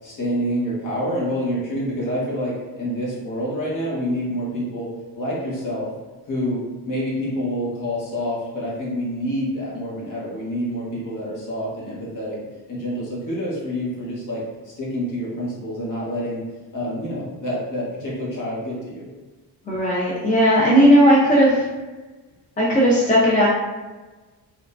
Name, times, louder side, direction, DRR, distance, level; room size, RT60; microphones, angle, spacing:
voice 1, 0.0-4.9 5.1-5.9 6.2-12.4 12.7-16.4 16.7-19.0, equal, 50° left, -5 dB, 1.2 m, -27 dB
voice 2, 19.7-21.6 22.6-23.5, equal, 20° left, -6 dB, 0.6 m, -16 dB
3.5 x 2.3 x 2.5 m, 1.2 s
cardioid pair, 100°, 40 cm